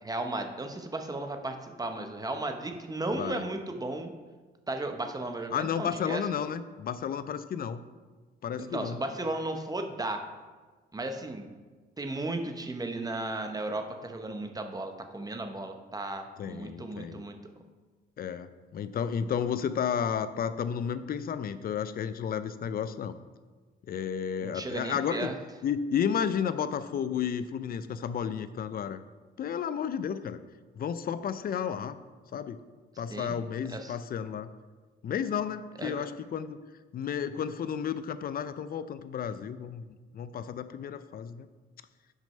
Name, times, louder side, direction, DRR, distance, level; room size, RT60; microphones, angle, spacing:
voice 1, 0.0-4.1 4.7-6.2 8.7-10.2 10.9-11.5 12.0-17.4 24.4-25.4 33.1-33.3 33.7-34.0 35.8-36.1, right 2 dB, 20° right, 5 dB, 0.8 m, -35 dB
voice 2, 3.1-3.5 5.5-7.8 8.4-9.0 16.4-17.2 18.2-23.2 23.9-25.3 25.6-29.0 29.4-30.4 30.8-32.0 32.3-32.6 33.0-34.5 35.0-36.6 36.9-41.5, left 8 dB, 50° left, 13 dB, 0.5 m, -32 dB
6.2 x 5.3 x 5.4 m, 1.4 s
cardioid pair, 90°, 20 cm